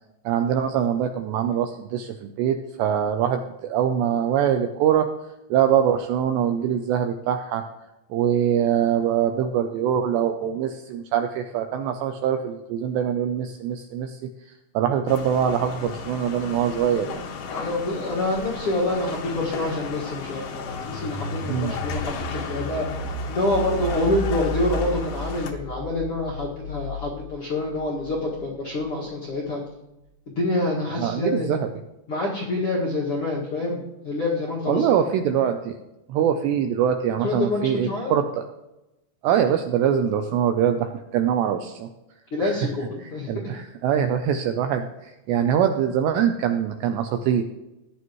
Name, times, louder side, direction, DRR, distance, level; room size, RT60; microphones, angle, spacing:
voice 1, 0.3-5.1 5.5-7.6 8.1-14.2 14.7-17.3 21.5-21.7 31.0-31.7 34.7-35.8 36.1-38.4 39.2-41.9 42.4-42.5 43.3-47.4, right 9 dB, 80° right, 6 dB, 2.5 m, -23 dB
sound 1, 15.1-25.5, left 6 dB, 75° left, 1.9 m, -35 dB
voice 2, 17.5-22.9 23.3-29.6 30.3-31.5 32.1-34.9 37.2-38.1 42.3-43.5, left 2 dB, 55° left, -6 dB, 1.6 m, -27 dB
sound 2, 20.5-29.2, equal, 45° right, 4.0 m, -34 dB
17.0 x 10.5 x 3.1 m, 0.94 s
omnidirectional pair, 5.6 m